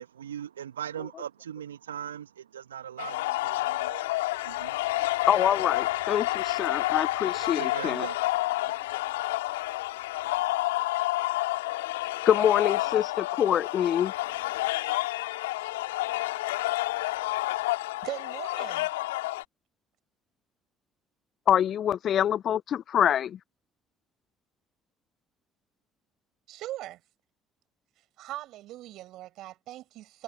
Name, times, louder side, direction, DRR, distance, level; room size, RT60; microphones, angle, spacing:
voice 1, 0.0-5.1 6.8-6.9 7.2-8.9, right 9 dB, 80° right, 1.8 m, -41 dB
sound 1, 3.0-19.4, left 18 dB, 75° left, 3.1 m, -29 dB
voice 2, 5.3-8.0 12.3-14.1 21.5-23.4, left 10 dB, 50° left, 0.6 m, -25 dB
voice 3, 18.0-18.9 26.5-27.0 28.2-30.2, right 15 dB, 60° right, 6.8 m, -40 dB
figure-of-eight pair, 50°, 0 cm